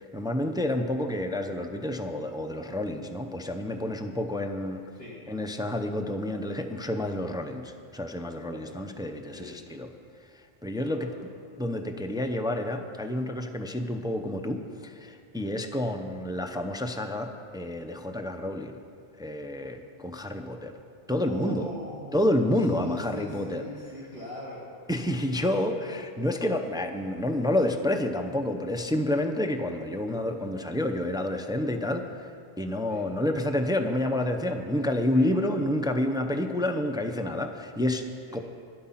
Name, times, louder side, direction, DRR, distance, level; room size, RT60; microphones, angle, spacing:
voice 1, 0.0-4.9 5.3-9.9 10.3-11.1 11.6-18.8 19.2-20.7 21.1-21.7 22.1-23.6 24.9-32.3 32.6-38.0 38.3-38.4, left 1 dB, 5° right, 5 dB, 0.5 m, -29 dB
voice 2, 8.5-8.9 9.3-9.8 10.8-11.2 21.2-22.3 22.7-24.7 32.9-33.0 35.1-35.3 38.3-38.4, left 1 dB, 30° right, -8 dB, 2.2 m, -42 dB
12.5 x 10.5 x 5.8 m, 2.4 s
omnidirectional pair, 1.1 m